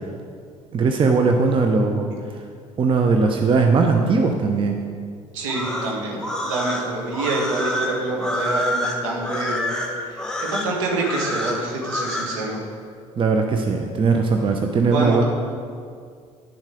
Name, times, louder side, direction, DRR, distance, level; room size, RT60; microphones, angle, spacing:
voice 1, 0.7-2.1 2.8-4.8 13.2-15.2, right 4 dB, 30° right, 4 dB, 0.7 m, -19 dB
voice 2, 5.3-9.6 10.0-12.6 14.8-15.2, right 2 dB, 65° right, -1 dB, 1.6 m, -26 dB
sound 1, 5.4-12.3, left 1 dB, 5° left, 1.3 m, -27 dB
9.7 x 7.2 x 3.8 m, 2.1 s
figure-of-eight pair, 55°, 17 cm